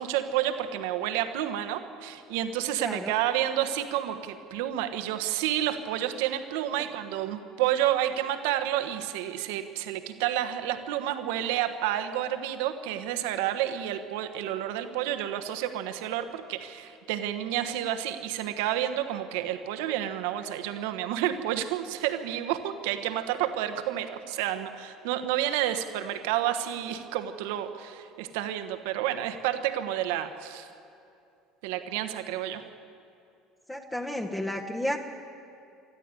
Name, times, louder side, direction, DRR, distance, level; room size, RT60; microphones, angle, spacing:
voice 1, 0.0-30.7 31.6-32.6, right 11 dB, 65° right, 9 dB, 1.2 m, -30 dB
voice 2, 2.8-3.1 33.7-35.0, left 1 dB, 10° left, 1 dB, 1.3 m, -32 dB
20.5 x 13.5 x 9.8 m, 2.5 s
figure-of-eight pair, 65°, 0 cm